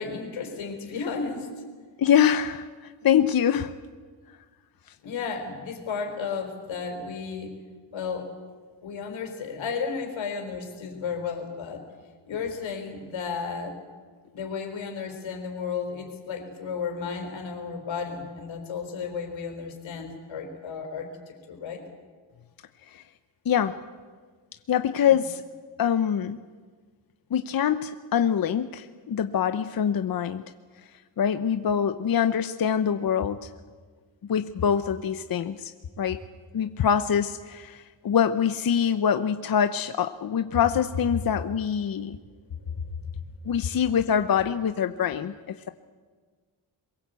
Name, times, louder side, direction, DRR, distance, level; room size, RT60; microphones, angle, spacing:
voice 1, 0.0-1.5 5.0-7.5 7.9-8.4 8.8-11.8 12.3-13.8 14.3-21.8 42.6-42.9, left 5 dB, 90° left, 4 dB, 4.5 m, -33 dB
voice 2, 2.0-3.7 22.9-23.0 23.4-23.8 24.7-25.4 25.8-26.4 27.3-30.4 31.2-33.5 34.3-35.7 36.0-36.2 36.5-42.2 43.4-45.7, left 8 dB, 50° left, 9 dB, 0.9 m, -24 dB
23.0 x 21.5 x 8.3 m, 1.5 s
cardioid pair, 110°, 45 cm